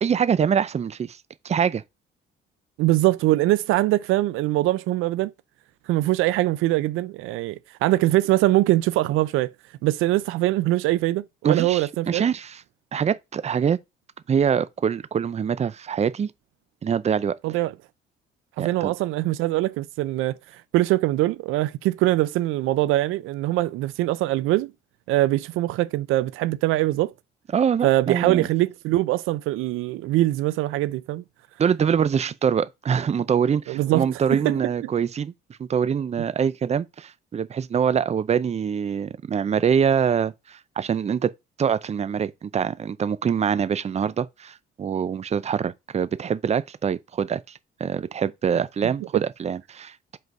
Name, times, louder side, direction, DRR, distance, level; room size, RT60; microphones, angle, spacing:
voice 1, 0.0-1.2 1.4-1.8 11.4-12.6 12.9-13.8 14.3-16.3 16.8-17.3 18.6-18.9 27.5-28.5 31.6-35.3 35.6-41.3 41.6-50.2, right 7 dB, 35° right, 0.6 m, -24 dB
voice 2, 2.8-5.3 5.9-9.5 9.8-12.2 17.4-17.7 18.6-20.4 20.7-24.7 25.1-27.1 27.8-31.2 33.7-34.1 34.4-34.6, right 16 dB, 90° right, 0.5 m, -22 dB
5.4 x 3.9 x 5.2 m
cardioid pair, 95°, 20 cm